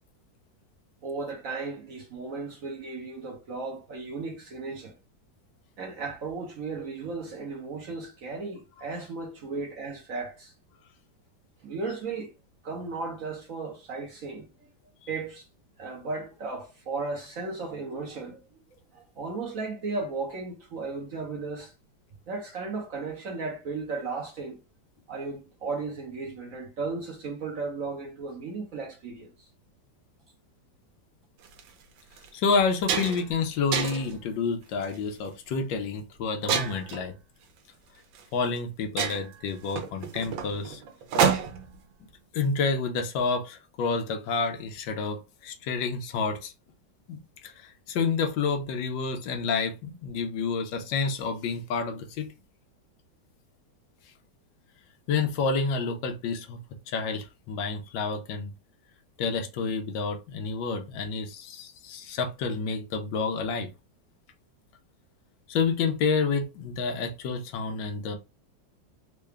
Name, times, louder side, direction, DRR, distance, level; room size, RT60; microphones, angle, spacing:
voice 1, 1.0-4.9 5.8-10.5 11.6-12.3 12.6-14.7 15.1-15.5 15.8-18.4 18.9-21.7 22.3-24.6 25.1-29.3, right 4 dB, 55° right, 1.0 m, -35 dB
sound 1, 31.4-31.6 32.2-32.3 32.6-33.3 33.7-34.2 34.8-35.1 36.5-37.0 38.1-38.2 38.6-38.7 39.0-41.7, right 7 dB, 85° right, 1.5 m, -28 dB
voice 2, 32.3-37.1 38.3-40.8 42.3-46.5 47.1-52.3 55.1-56.6 56.9-58.5 59.2-63.7 65.5-68.2, left 4 dB, 85° left, 1.4 m, -29 dB
3.8 x 2.2 x 3.4 m
omnidirectional pair, 2.0 m